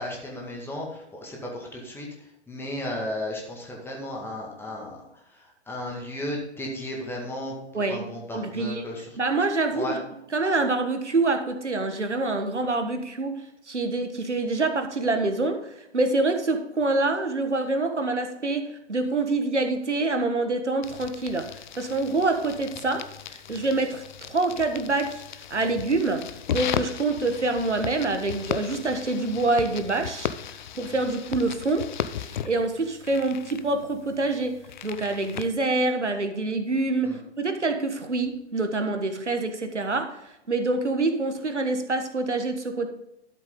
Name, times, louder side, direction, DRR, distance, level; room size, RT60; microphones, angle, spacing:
voice 1, 0.0-2.1 2.5-5.0 5.7-9.1 9.7-9.9 37.1-37.2, left 1 dB, 5° left, -1 dB, 2.0 m, -34 dB
voice 2, 7.7-8.8 9.1-10.0 10.3-21.5 21.8-25.2 25.5-30.3 30.7-31.9 32.2-34.6 34.8-42.9, right 3 dB, 80° right, 7 dB, 1.5 m, -26 dB
sound 1, 20.8-35.5, left 9 dB, 40° left, 0.6 m, -36 dB
12.5 x 7.1 x 3.8 m, 0.85 s
figure-of-eight pair, 120°, 34 cm